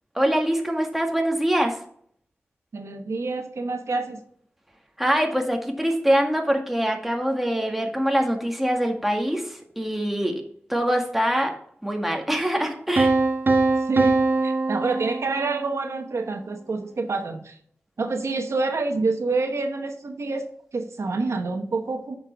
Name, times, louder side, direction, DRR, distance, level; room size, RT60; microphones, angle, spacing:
voice 1, 0.2-1.8 5.0-10.3 10.7-11.5 11.8-13.1, equal, 5° right, 2 dB, 1.8 m, -24 dB
voice 2, 2.7-4.2 13.9-17.6 18.0-20.4 20.7-22.2, right 3 dB, 70° right, 5 dB, 1.0 m, -27 dB
Piano, 13.0-15.8, right 3 dB, 45° right, 1.2 m, -22 dB
9.0 x 6.3 x 3.4 m, 0.62 s
wide cardioid pair, 65°, 5 cm